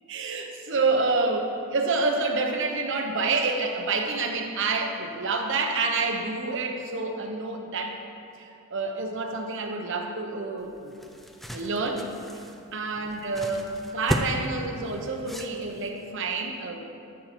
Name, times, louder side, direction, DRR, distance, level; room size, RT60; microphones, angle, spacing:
voice 1, 0.1-8.0 8.4-11.0 11.5-12.0 12.7-16.9, right 3 dB, 60° right, 3 dB, 1.0 m, -28 dB
sound 1, 10.6-16.0, equal, ahead, 0.5 m, -35 dB
12.5 x 7.5 x 4.4 m, 2.8 s
head